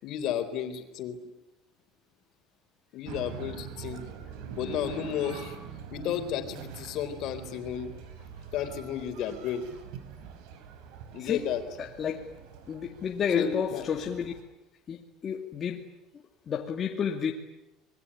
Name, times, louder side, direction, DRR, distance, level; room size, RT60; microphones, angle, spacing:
voice 1, 0.0-1.2 2.9-4.0 4.5-5.6 5.9-7.9 8.5-9.7 11.1-11.6 13.3-13.9, left 9 dB, 55° left, 8 dB, 3.9 m, -32 dB
sound 1, 3.0-14.4, right 7 dB, 70° right, 4.9 m, -44 dB
voice 2, 12.7-14.3 14.9-15.8 16.5-17.3, left 7 dB, 30° left, 0 dB, 2.4 m, -30 dB
27.0 x 22.0 x 10.0 m, 0.93 s
cardioid pair, 155°, 0 cm